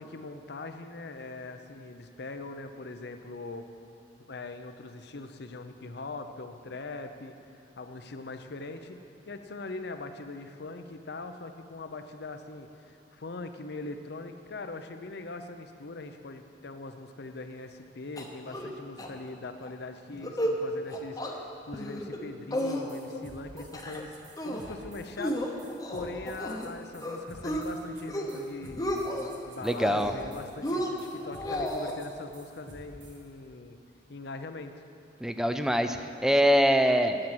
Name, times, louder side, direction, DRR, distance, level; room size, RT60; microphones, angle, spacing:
voice 1, 0.0-3.7 4.3-7.3 7.8-9.0 9.3-33.8 34.1-34.8, left 3 dB, 65° left, 8 dB, 0.7 m, -41 dB
sound 1, 18.2-18.7 19.0-19.1 19.4-19.7 20.1-20.6 20.9-21.3 21.7-22.2 22.5-23.2 23.6-24.0 24.4-24.8 25.2-26.7 27.0-27.6 28.0-28.4 28.6-29.3 29.7-30.3 30.6-31.9, equal, 20° left, 1.0 m, -33 dB
sound 2, 22.6-22.7 22.9-33.2, right 1 dB, 80° right, 1.6 m, -51 dB
voice 2, 29.6-30.1 35.2-37.2, equal, 5° right, 8 dB, 0.5 m, -24 dB
8.9 x 8.8 x 7.8 m, 2.7 s
head